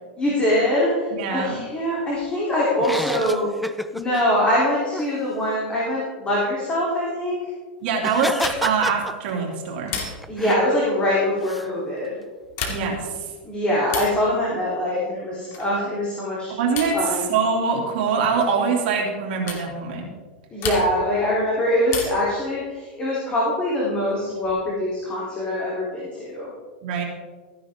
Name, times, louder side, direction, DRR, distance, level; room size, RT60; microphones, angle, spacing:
voice 1, 0.2-3.5 3.9-7.4 10.3-12.1 13.4-16.6 16.9-17.3 20.5-26.5, left 1 dB, 20° left, -7 dB, 3.5 m, -23 dB
voice 2, 1.2-1.6 7.8-10.0 12.7-13.2 16.6-20.1 26.8-27.0, right 5 dB, 60° right, 0 dB, 2.9 m, -24 dB
sound 1, 2.8-4.2 4.9-5.1 8.0-9.5 10.0-10.6 11.4-11.7, equal, ahead, 0.4 m, -29 dB
sound 2, 8.3-8.9 9.9-10.5 12.4-13.1 13.9-14.3 15.5-15.8 16.7-17.1 18.4-18.6 19.5-19.7 20.6-21.1 21.9-22.4 23.8-24.5, left 5 dB, 45° left, 2.4 m, -32 dB
14.5 x 10.0 x 3.7 m, 1.4 s
supercardioid pair, 130°, 6 cm